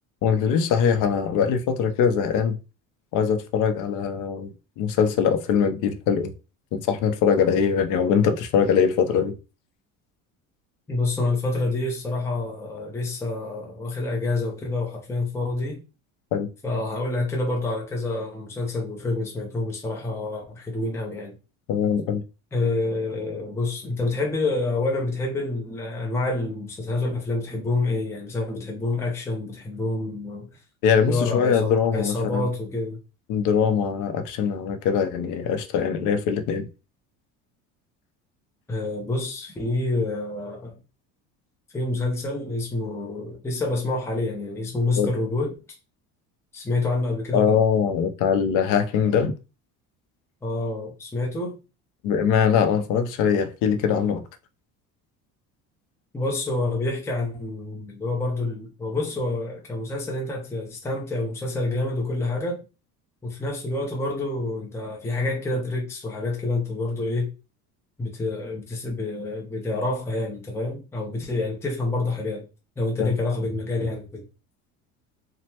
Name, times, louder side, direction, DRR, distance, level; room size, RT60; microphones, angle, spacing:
voice 1, 0.2-2.6 3.1-6.3 6.7-9.4 16.3-16.5 21.7-22.2 30.8-32.5 33.3-36.7 45.0-45.1 47.3-49.3 52.0-54.2 73.0-73.1, left 7 dB, 65° left, 0.6 m, -22 dB
voice 2, 10.9-15.8 16.6-21.3 22.5-30.5 31.0-33.0 38.7-40.7 41.7-45.5 46.5-47.6 50.4-51.6 56.1-62.6 63.2-67.3 68.0-72.5 72.8-74.2, left 2 dB, 10° left, 0.6 m, -27 dB
3.1 x 2.1 x 2.9 m
cardioid pair, 120°, 34 cm